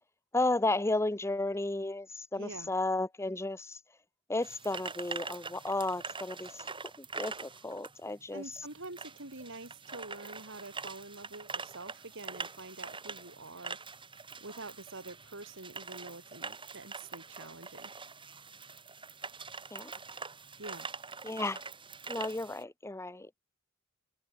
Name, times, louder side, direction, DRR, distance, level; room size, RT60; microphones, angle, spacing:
voice 1, 0.3-3.8 4.3-6.6 7.0-8.4 19.7-19.9 21.2-21.6 22.1-23.4, left 2 dB, 15° left, 0.8 m, -33 dB
voice 2, 2.4-2.7 8.3-13.8 14.4-17.9 20.6-20.9, right 2 dB, 65° right, 5.8 m, -46 dB
sound 1, 4.4-22.6, right 4 dB, 25° right, 7.9 m, -44 dB
head